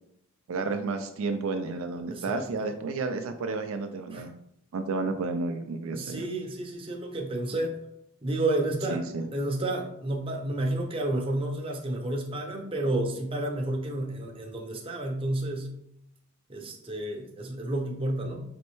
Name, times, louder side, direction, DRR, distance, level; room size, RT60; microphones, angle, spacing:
voice 1, 0.5-4.3 4.7-6.2 7.5-7.6 8.9-9.3, right 3 dB, 70° right, 7 dB, 0.4 m, -31 dB
voice 2, 2.1-2.7 4.1-4.3 5.9-7.8 8.2-9.0 9.3-15.7 16.5-18.4, right 1 dB, 25° right, 1 dB, 0.6 m, -31 dB
4.2 x 3.1 x 3.1 m, 0.76 s
head